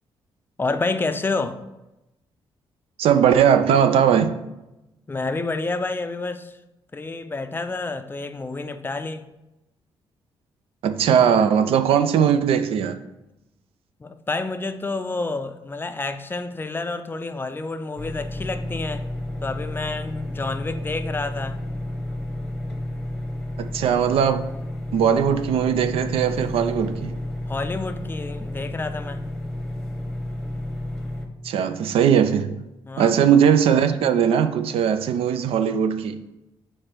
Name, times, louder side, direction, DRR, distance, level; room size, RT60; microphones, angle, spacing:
voice 1, 0.6-1.6 5.1-6.6 6.9-9.2 14.0-19.0 19.4-21.6 27.5-29.3 32.9-33.1, left 3 dB, 20° left, 0.4 m, -29 dB
voice 2, 3.0-4.3 10.8-12.9 23.6-24.4 24.9-27.1 31.4-32.6 33.0-36.2, right 8 dB, 80° right, 0.4 m, -19 dB
sound 1, 18.0-31.3, left 1 dB, 5° left, 1.0 m, -31 dB
4.9 x 4.3 x 4.5 m
cardioid pair, 95°, 10 cm